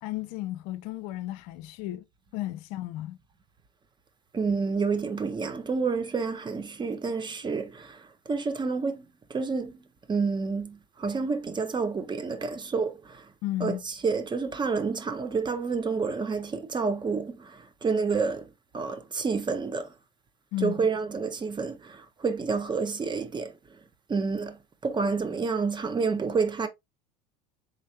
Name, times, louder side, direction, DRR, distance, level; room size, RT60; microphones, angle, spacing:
voice 1, 0.0-2.0 2.3-3.2 13.4-13.8 20.5-20.9, left 15 dB, 60° left, 0.5 m, -33 dB
voice 2, 4.3-13.3 13.6-19.9 20.6-23.5 24.1-24.6 24.8-26.7, right 4 dB, 20° right, 0.7 m, -29 dB
3.9 x 3.2 x 2.7 m
hypercardioid pair, 80°, 21 cm